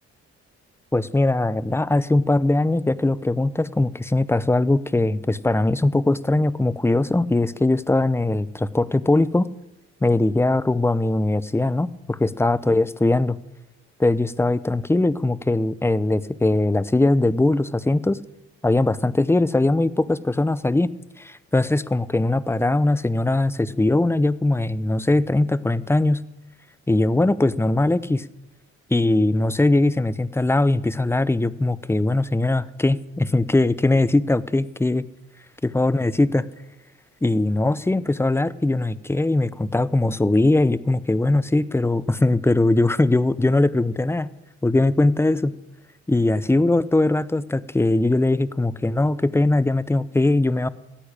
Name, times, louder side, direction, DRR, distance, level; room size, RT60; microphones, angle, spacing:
voice 1, 0.9-9.5 10.0-13.4 14.0-18.2 18.6-26.2 26.9-28.2 28.9-35.0 35.6-36.4 37.2-44.3 44.6-45.5 46.1-50.7, left 2 dB, 10° left, 18 dB, 0.6 m, -20 dB
15.0 x 8.6 x 10.0 m, 0.92 s
cardioid pair, 85°, 29 cm